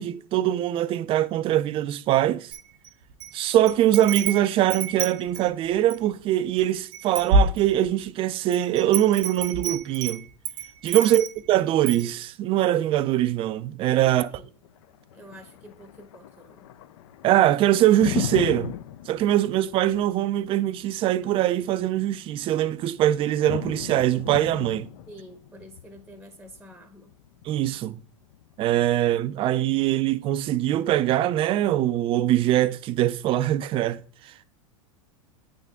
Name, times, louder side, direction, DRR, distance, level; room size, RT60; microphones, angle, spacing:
voice 1, 0.0-2.5 3.3-10.2 10.8-14.3 17.2-18.7 19.1-24.9 27.4-28.0 28.6-34.4, right 13 dB, 30° right, 0.4 m, -22 dB
Wind chime, 2.5-3.3 3.7-6.1 6.6-6.7 6.9-8.0 8.5-11.5 11.9-12.1, right 3 dB, 65° right, 0.8 m, -27 dB
voice 2, 14.0-14.5 15.1-16.7 25.1-27.2, equal, 5° right, 0.8 m, -47 dB
Thunder, 14.6-28.6, left 12 dB, 60° left, 0.5 m, -38 dB
8.8 x 3.8 x 3.5 m
hypercardioid pair, 90°, 17 cm